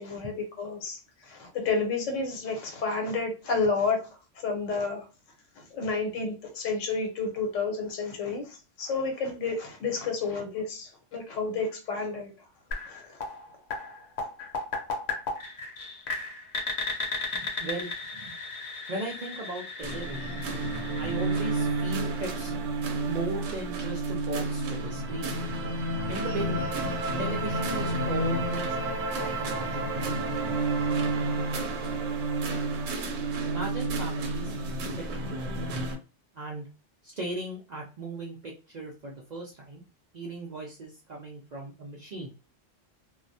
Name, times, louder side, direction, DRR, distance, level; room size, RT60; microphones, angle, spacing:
voice 1, 0.0-4.1 4.4-5.0 5.7-12.3 12.9-13.0 14.2-14.3, left 4 dB, 85° left, 3 dB, 1.1 m, -30 dB
sound 1, 12.7-22.5, left 3 dB, 65° left, 0.9 m, -36 dB
voice 2, 17.3-18.3 18.9-20.4 21.0-22.5 23.1-25.3 26.1-26.7 27.2-28.8 29.1-30.4 33.4-34.5 35.0-35.7 36.3-36.7 37.0-39.8 40.1-42.3, right 2 dB, 60° right, -2 dB, 0.4 m, -37 dB
sound 2, 19.8-36.0, right 2 dB, 90° right, 1.0 m, -30 dB
2.3 x 2.1 x 2.5 m, 0.32 s
omnidirectional pair, 1.3 m